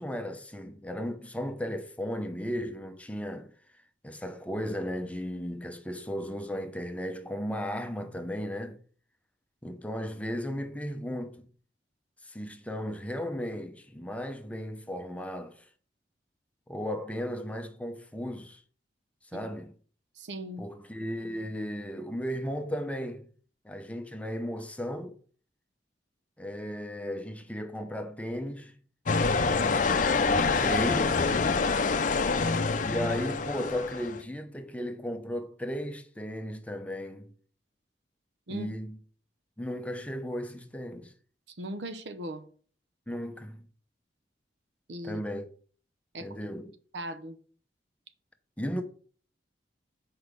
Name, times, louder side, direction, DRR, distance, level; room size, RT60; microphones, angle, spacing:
voice 1, 0.0-3.5 4.0-8.8 9.6-11.5 12.2-15.6 16.7-18.6 19.3-19.7 20.6-23.3 23.6-25.2 26.4-28.8 29.9-31.2 32.8-37.3 38.5-39.0 39.6-41.1 43.1-43.6 45.0-45.4 46.2-46.7 48.6-48.8, equal, 10° left, 0.7 m, -35 dB
voice 2, 20.2-20.7 38.5-38.7 41.5-42.4 44.9-45.2 46.1-46.3 46.9-47.4, right 1 dB, 80° right, 0.9 m, -38 dB
sound 1, 29.1-34.2, left 4 dB, 45° left, 0.5 m, -26 dB
6.4 x 4.8 x 5.1 m
head